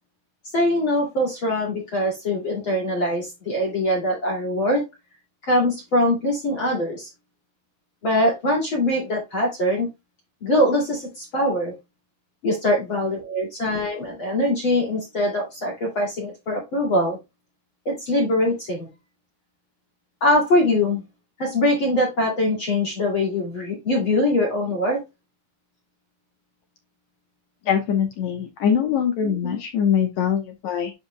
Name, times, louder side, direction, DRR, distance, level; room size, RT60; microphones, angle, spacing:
voice 1, 0.5-4.8 5.4-7.1 8.0-9.9 10.4-11.7 12.4-17.2 17.8-18.9 20.2-21.0 21.4-25.0 29.2-29.6, left 1 dB, 35° left, -2 dB, 2.9 m, -22 dB
voice 2, 27.7-30.9, left 8 dB, 70° left, 4 dB, 1.7 m, -23 dB
10.5 x 5.0 x 2.2 m, 0.23 s
omnidirectional pair, 4.5 m